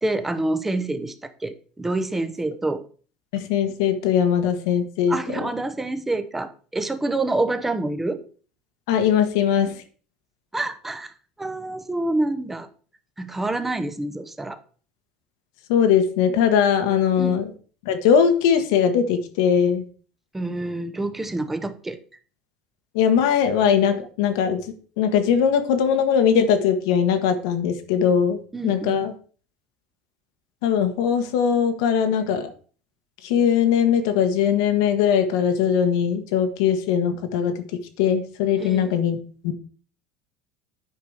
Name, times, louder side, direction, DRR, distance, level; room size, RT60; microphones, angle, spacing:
voice 1, 0.0-2.8 5.1-8.2 10.5-11.1 11.4-12.7 13.2-14.6 17.2-17.4 20.3-22.0 28.5-29.1 38.6-38.9, right 2 dB, 10° right, 10 dB, 0.9 m, -27 dB
voice 2, 3.3-5.2 8.9-9.7 15.7-17.5 17.8-19.8 22.9-24.6 25.0-29.1 30.6-32.5 33.2-37.5 38.0-39.2 39.4-39.5, left 8 dB, 85° left, 7 dB, 1.4 m, -20 dB
9.4 x 4.9 x 4.9 m, 0.41 s
supercardioid pair, 110°, 2 cm